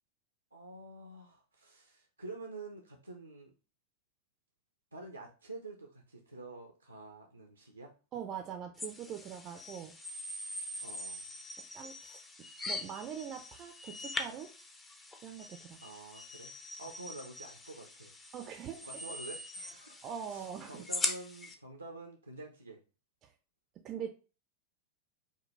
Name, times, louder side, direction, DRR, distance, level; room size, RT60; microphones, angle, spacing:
voice 1, 0.5-3.5 4.9-7.9 10.8-11.2 15.8-16.5 16.8-18.1 18.8-22.8, right 2 dB, 85° right, 2 dB, 0.5 m, -48 dB
voice 2, 8.1-9.9 11.7-12.2 12.7-14.5 15.2-15.8 18.3-18.8 20.0-20.8 23.2-23.3 23.8-24.1, right 8 dB, 35° right, 5 dB, 0.4 m, -42 dB
sound 1, 8.8-21.5, left 2 dB, 15° left, 0.6 m, -42 dB
5.3 x 2.2 x 3.1 m, 0.34 s
figure-of-eight pair, 90°, 0 cm